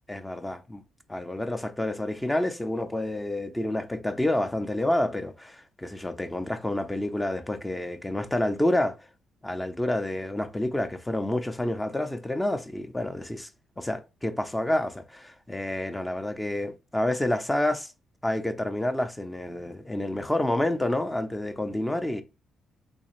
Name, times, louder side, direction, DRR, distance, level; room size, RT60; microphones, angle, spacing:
voice 1, 0.1-0.8 1.1-9.0 9.4-13.5 13.8-17.9 18.2-22.2, left 1 dB, 10° left, 0.5 m, -28 dB
3.5 x 3.2 x 3.0 m
cardioid pair, 90°, 0 cm